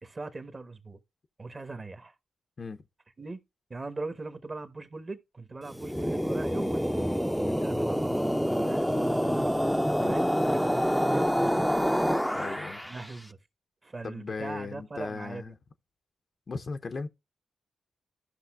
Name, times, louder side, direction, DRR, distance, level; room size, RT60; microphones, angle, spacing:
voice 1, 0.0-1.0 1.4-2.1 3.2-3.4 3.7-9.5 10.0-11.7 12.9-13.4 13.8-15.5, right 3 dB, 35° right, 1.1 m, -40 dB
sound 1, 5.7-13.1, equal, ahead, 0.5 m, -27 dB
voice 2, 12.3-12.8 14.0-15.5 16.5-17.1, left 4 dB, 50° left, 0.6 m, -37 dB
15.0 x 5.6 x 2.3 m
hypercardioid pair, 40°, 0 cm